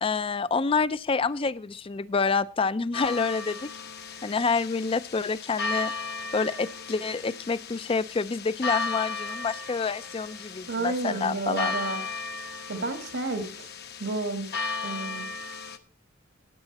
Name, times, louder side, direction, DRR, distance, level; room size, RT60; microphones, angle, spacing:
voice 1, 0.0-3.7 4.2-5.9 6.3-11.7, left 4 dB, 30° left, 16 dB, 0.4 m, -27 dB
sound 1, 2.9-15.8, left 4 dB, 55° left, 1.0 m, -35 dB
voice 2, 10.7-12.0 12.7-13.7 14.0-14.5 14.8-15.3, right 3 dB, 80° right, 6 dB, 2.0 m, -31 dB
14.5 x 8.9 x 4.1 m, 0.40 s
head